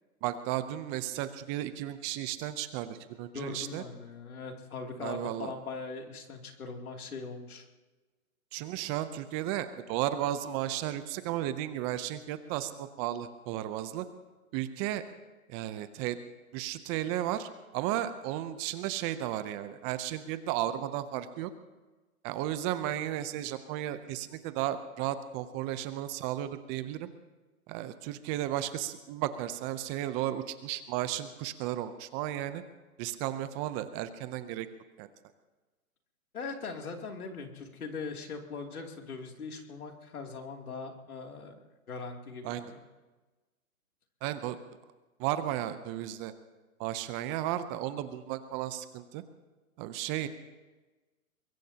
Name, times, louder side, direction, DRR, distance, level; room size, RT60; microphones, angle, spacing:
voice 1, 0.2-3.8 5.0-5.5 8.5-14.1 14.5-15.0 15.5-16.2 16.5-21.5 22.2-27.1 27.7-32.6 33.0-34.7 35.0-35.1 42.4-42.7 44.2-44.6 45.2-46.3 46.8-49.2 49.8-50.3, right 13 dB, 20° right, 12 dB, 0.6 m, -34 dB
voice 2, 3.3-7.6 36.3-42.8, left 4 dB, 85° left, 2 dB, 2.9 m, -41 dB
23.5 x 21.5 x 2.9 m, 1.2 s
hypercardioid pair, 135°, 43 cm